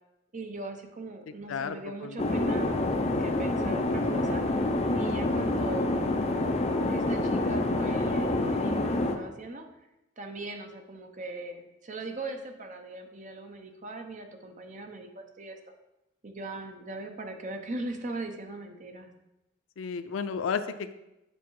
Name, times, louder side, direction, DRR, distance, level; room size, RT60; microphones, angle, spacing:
voice 1, 0.3-2.8 3.2-4.4 4.9-6.0 6.9-9.7 10.2-15.6 16.2-19.1, right 2 dB, 40° right, 5 dB, 0.8 m, -39 dB
voice 2, 2.0-2.3 19.8-20.9, left 6 dB, 90° left, 11 dB, 0.4 m, -32 dB
sound 1, 2.2-9.2, left 2 dB, 35° left, 0.6 m, -27 dB
8.1 x 4.5 x 4.7 m, 0.94 s
head